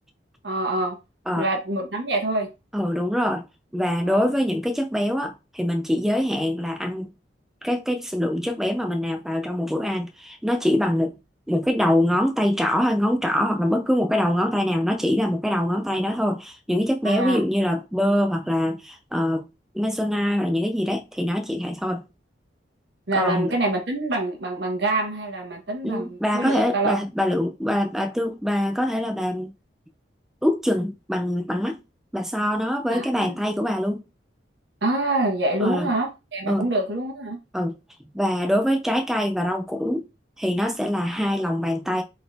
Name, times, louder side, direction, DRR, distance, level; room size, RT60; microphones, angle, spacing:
voice 1, 0.4-1.0 1.4-2.5 4.1-4.2 17.0-17.4 23.1-27.0 32.9-33.3 34.8-37.4, right 2 dB, 70° right, 1.4 m, -26 dB
voice 2, 2.7-3.5 3.7-7.1 7.6-11.1 11.5-19.4 19.7-22.0 23.1-23.5 25.8-29.5 30.4-31.8 32.1-34.0 35.6-35.9 36.5-36.7 37.5-37.7 38.0-40.1 40.4-42.0, equal, ahead, 0.4 m, -24 dB
4.1 x 3.9 x 3.3 m
head